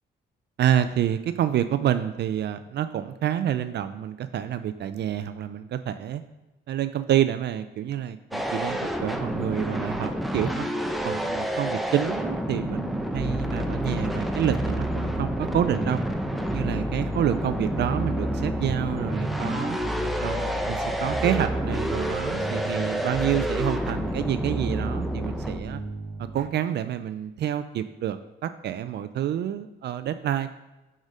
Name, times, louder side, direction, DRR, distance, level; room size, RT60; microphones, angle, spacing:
voice 1, 0.6-6.2 6.7-10.6 11.0-16.0 16.4-19.8 20.2-25.8 26.2-30.5, right 10 dB, 60° right, 11 dB, 0.4 m, -28 dB
sound 1, 8.3-25.6, equal, ahead, 0.6 m, -29 dB
sound 2, 13.1-26.5, right 1 dB, 25° right, 1.5 m, -34 dB
6.3 x 5.0 x 5.0 m, 1.0 s
cardioid pair, 90°, 20 cm